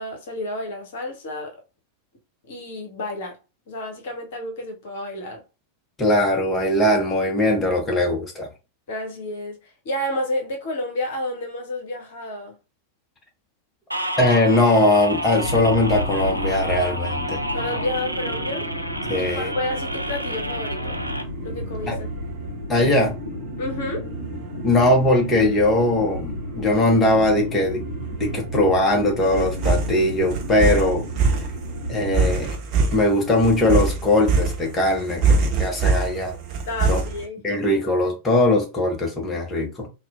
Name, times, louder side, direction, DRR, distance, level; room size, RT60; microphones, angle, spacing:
voice 1, 0.0-1.5 2.5-3.4 3.7-5.4 8.9-12.6 17.5-18.7 19.2-20.9 21.4-22.1 23.6-24.1 36.7-37.4, left 1 dB, 55° left, 0.9 m, -30 dB
voice 2, 6.0-8.5 14.2-17.4 19.1-19.5 21.9-22.0 22.7-23.2 24.6-27.9 28.2-31.0 31.9-32.6 32.9-36.3 36.9-37.0 37.4-39.9, left 1 dB, 15° left, 0.9 m, -20 dB
sound 1, 13.9-21.2, equal, 90° right, 0.4 m, -30 dB
sound 2, 15.4-32.4, left 1 dB, 80° left, 0.7 m, -32 dB
sound 3, 21.0-37.3, right 4 dB, 40° right, 0.9 m, -26 dB
4.1 x 2.2 x 2.4 m
figure-of-eight pair, 90°, 0 cm